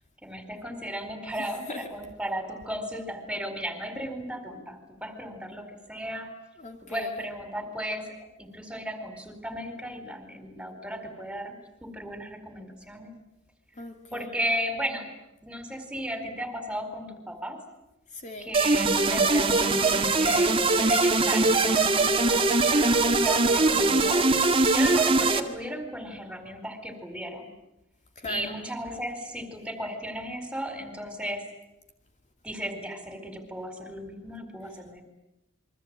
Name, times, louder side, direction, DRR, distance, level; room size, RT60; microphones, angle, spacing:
voice 1, 0.2-6.3 6.9-13.1 14.1-15.1 15.4-17.6 18.4-20.6 20.9-24.3 24.6-27.5 28.3-31.5 32.4-35.0, equal, 5° right, 7 dB, 4.4 m, -35 dB
voice 2, 6.6-7.1 13.8-14.4 18.1-18.5 28.2-28.5, left 2 dB, 35° left, 4 dB, 2.4 m, -39 dB
sound 1, 18.5-25.4, right 3 dB, 25° right, 2.0 m, -22 dB
28.0 x 23.5 x 8.9 m, 0.91 s
head